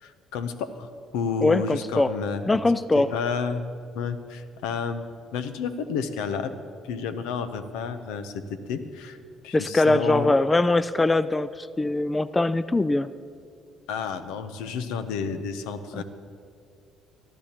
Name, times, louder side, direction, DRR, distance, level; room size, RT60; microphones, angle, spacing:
voice 1, 0.0-2.5 2.9-3.6 3.9-5.0 5.3-6.5 6.8-9.2 9.4-10.3 13.9-16.0, left 6 dB, 85° left, 10 dB, 0.7 m, -31 dB
voice 2, 1.4-2.1 2.5-3.1 9.5-13.1 15.9-16.0, left 2 dB, 20° left, 15 dB, 0.3 m, -22 dB
19.0 x 12.5 x 2.9 m, 2.3 s
supercardioid pair, 75°, 0 cm